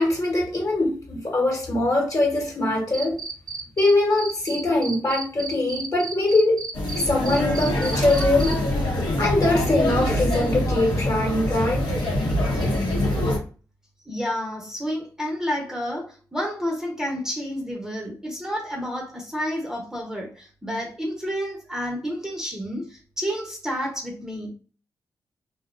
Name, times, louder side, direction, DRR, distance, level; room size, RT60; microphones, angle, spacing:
voice 1, 0.0-3.2 3.8-6.7 6.9-8.6 9.0-11.9, left 2 dB, 40° left, 1.2 m, -22 dB
Cricket, 2.9-3.9 4.2-8.5, right 4 dB, 55° right, 0.5 m, -33 dB
sound 1, 6.7-13.4, left 1 dB, 75° left, 0.9 m, -24 dB
voice 2, 14.1-24.5, equal, 5° right, 0.8 m, -30 dB
2.4 x 2.1 x 2.4 m
cardioid pair, 55°, 8 cm